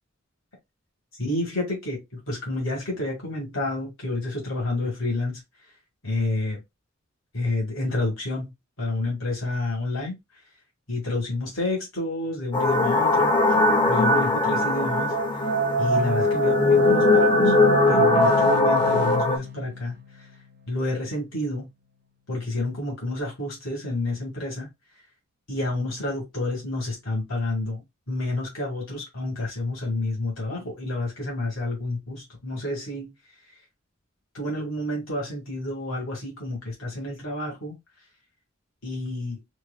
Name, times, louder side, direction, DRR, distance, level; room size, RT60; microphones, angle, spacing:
voice 1, 1.2-5.4 6.0-6.6 7.3-8.5 8.8-10.2 10.9-13.4 13.9-15.4 15.8-17.5 17.9-20.3 20.7-21.7 22.3-24.7 25.5-33.1 34.3-37.8 38.8-39.4, left 2 dB, 80° left, 1.9 m, -29 dB
sound 1, 12.5-19.4, left 2 dB, 25° left, 0.6 m, -20 dB
sound 2, 18.1-21.6, left 2 dB, 55° right, 0.6 m, -41 dB
4.6 x 2.5 x 2.3 m
head